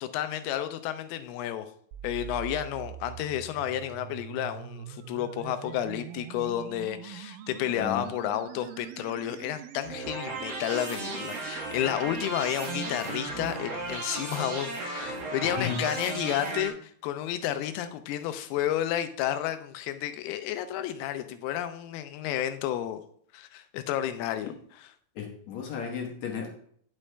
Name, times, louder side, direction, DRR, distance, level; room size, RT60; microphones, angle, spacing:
voice 1, 0.0-1.7 2.0-23.0 23.3-24.5, left 11 dB, 90° left, 2.6 m, -31 dB
sound 1, 1.9-11.9, right 13 dB, 80° right, 2.2 m, -44 dB
voice 2, 7.7-8.1 15.5-15.8 25.2-26.5, left 7 dB, 65° left, 1.9 m, -34 dB
sound 2, 9.8-16.7, right 3 dB, 60° right, 1.9 m, -35 dB
9.8 x 6.2 x 3.3 m
omnidirectional pair, 4.4 m